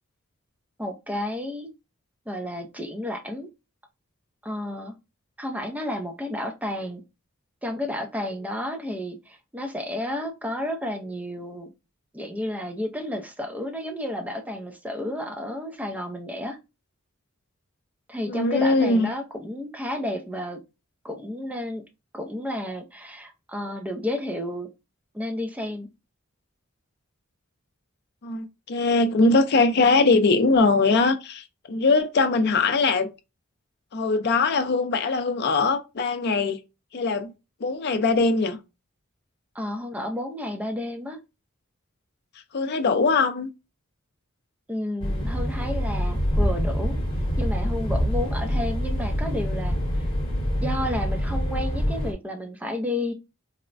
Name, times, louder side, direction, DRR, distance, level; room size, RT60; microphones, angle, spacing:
voice 1, 0.8-1.7 2.3-3.5 4.4-4.9 5.4-7.0 7.6-11.7 12.1-16.6 18.1-20.6 21.0-21.8 22.1-24.7 25.1-25.9 39.5-41.2 44.7-47.0 47.4-50.1 50.6-53.1, left 1 dB, 5° right, 0.5 m, -31 dB
voice 2, 18.3-19.1 28.2-33.1 33.9-36.6 36.9-37.3 37.6-38.6 42.5-43.5, left 3 dB, 50° left, 0.5 m, -21 dB
sound 1, 45.0-52.1, equal, 25° left, 1.1 m, -25 dB
4.1 x 2.1 x 2.5 m
head